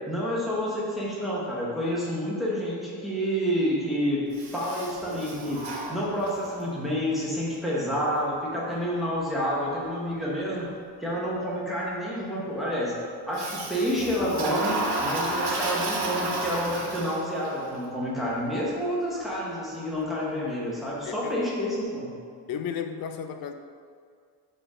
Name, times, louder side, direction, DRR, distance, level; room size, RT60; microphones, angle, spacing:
voice 1, 0.1-4.2 4.5-5.6 5.9-10.7 11.0-12.9 13.3-14.8 15.0-22.1, equal, ahead, -7 dB, 1.1 m, -29 dB
Toilet flush, 4.3-6.6 13.3-17.5, right 2 dB, 65° right, 1.3 m, -31 dB
voice 2, 21.0-21.4 22.5-23.5, left 7 dB, 55° left, 7 dB, 0.5 m, -34 dB
6.7 x 3.9 x 5.0 m, 2.1 s
cardioid pair, 180°, 42 cm